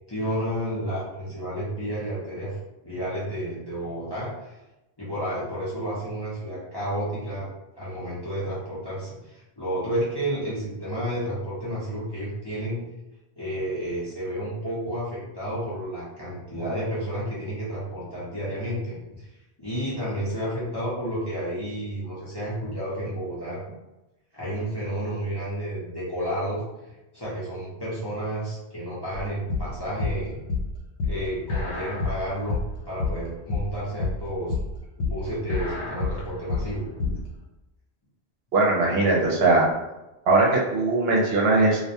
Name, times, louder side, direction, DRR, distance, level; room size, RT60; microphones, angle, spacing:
voice 1, 0.1-2.6 2.8-4.6 5.0-7.5 7.8-12.9 13.4-19.3 19.6-23.6 24.3-26.6 26.9-30.4 31.0-34.5 35.0-37.2, right 1 dB, 25° left, -10 dB, 0.6 m, -31 dB
sound 1, 29.1-37.3, left 4 dB, 85° left, 0.9 m, -29 dB
voice 2, 38.5-39.7 40.3-41.8, right 2 dB, 70° right, -2 dB, 0.8 m, -20 dB
2.2 x 2.2 x 2.7 m, 1.0 s
omnidirectional pair, 1.1 m